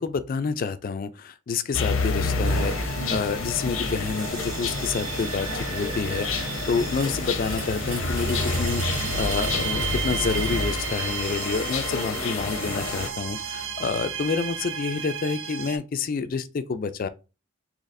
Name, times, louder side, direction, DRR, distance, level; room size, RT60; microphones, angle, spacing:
voice 1, 0.0-17.1, left 5 dB, 45° left, 0.3 m, -28 dB
sound 1, 1.7-13.1, left 3 dB, 85° left, 0.7 m, -29 dB
sound 2, 2.4-15.8, right 6 dB, 80° right, 0.6 m, -34 dB
sound 3, 7.0-11.4, right 4 dB, 40° right, 0.8 m, -42 dB
4.0 x 2.8 x 2.6 m
head